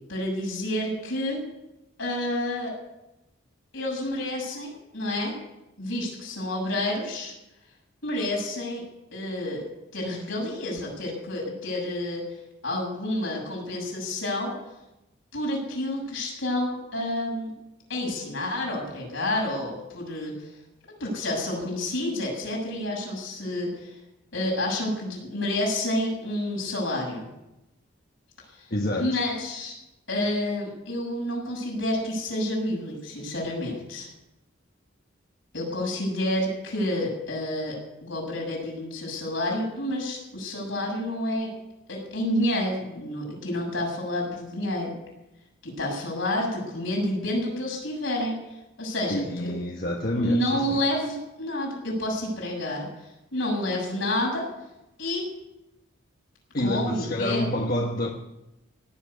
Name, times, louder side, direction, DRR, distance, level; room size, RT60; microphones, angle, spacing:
voice 1, 0.1-1.4 2.0-2.7 3.7-5.4 5.8-7.3 8.0-8.8 9.1-9.7 9.9-12.3 12.6-14.5 15.3-17.5 17.9-20.5 21.0-24.0 24.3-27.3 28.5-28.7 29.0-29.7 30.1-34.1 35.5-41.5 41.9-44.9 45.6-48.4 48.8-49.5 50.1-52.9 53.3-54.4 55.0-55.2 56.6-57.4, left 1 dB, 70° left, -1 dB, 7.2 m, -29 dB
voice 2, 28.7-29.2 49.1-50.8 56.5-58.1, left 1 dB, 45° left, 1 dB, 1.3 m, -28 dB
18.0 x 7.6 x 9.9 m, 0.93 s
head